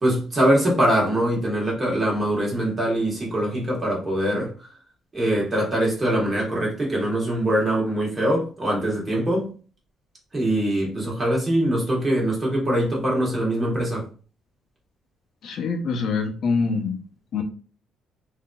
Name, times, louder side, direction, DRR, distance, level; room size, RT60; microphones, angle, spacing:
voice 1, 0.0-4.7 5.1-9.5 10.3-14.1, right 1 dB, 20° right, 1.2 m, -23 dB
voice 2, 15.4-17.0 17.3-17.4, left 4 dB, 50° left, 0.6 m, -24 dB
3.7 x 2.6 x 2.3 m
cardioid pair, 160°, 0 cm